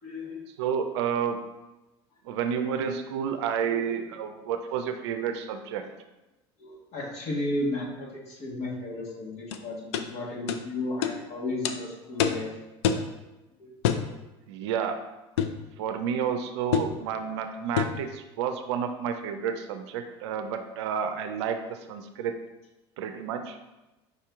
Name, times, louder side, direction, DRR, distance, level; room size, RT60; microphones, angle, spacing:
voice 1, 0.0-0.4 3.7-4.0 6.6-12.5 13.6-13.8, left 2 dB, 50° left, -3 dB, 1.6 m, -34 dB
voice 2, 0.6-1.4 2.2-5.8 14.5-15.0 15.8-22.3 23.0-23.6, right 7 dB, 85° right, 7 dB, 0.4 m, -30 dB
sound 1, 9.5-9.6 9.9-10.1 10.5-10.6 11.0-11.2 11.6-11.8 12.2-12.4 12.8-13.1 13.8-14.1 15.4-15.6 16.7-17.0 17.8-18.0, left 8 dB, 85° left, 0.4 m, -26 dB
5.3 x 2.8 x 3.5 m, 1.0 s
supercardioid pair, 90°, 14 cm